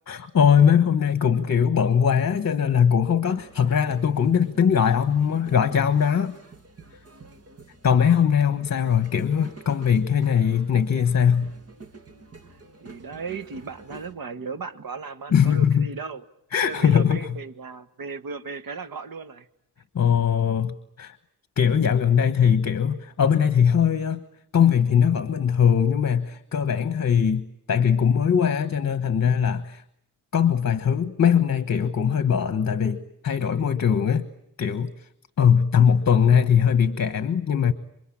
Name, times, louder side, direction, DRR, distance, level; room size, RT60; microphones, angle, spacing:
voice 1, 0.1-6.3 7.8-11.5 15.3-15.9 16.5-17.4 19.9-21.2 21.6-24.2 24.5-29.8 30.3-34.3 34.6-34.9 35.4-37.7, left 7 dB, 50° left, 11 dB, 1.3 m, -21 dB
sound 1, 3.3-14.1, right 3 dB, 45° right, 2.4 m, -48 dB
voice 2, 12.5-16.2 16.6-19.5, right 4 dB, 80° right, 10 dB, 1.6 m, -36 dB
28.5 x 24.0 x 8.7 m, 0.73 s
wide cardioid pair, 155°, 34 cm